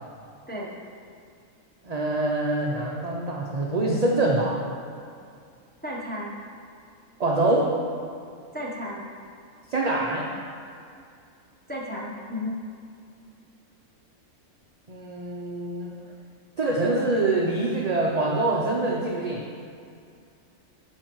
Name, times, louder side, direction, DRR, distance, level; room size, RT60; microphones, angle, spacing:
voice 1, 0.5-0.8 5.8-6.3 8.5-9.1 11.7-12.6, left 1 dB, 10° left, -4 dB, 0.6 m, -33 dB
voice 2, 1.8-4.6 7.2-7.7 9.7-10.3 14.9-15.9 16.6-19.4, right 2 dB, 55° right, -2 dB, 0.4 m, -25 dB
11.0 x 5.1 x 3.0 m, 2.4 s
omnidirectional pair, 1.4 m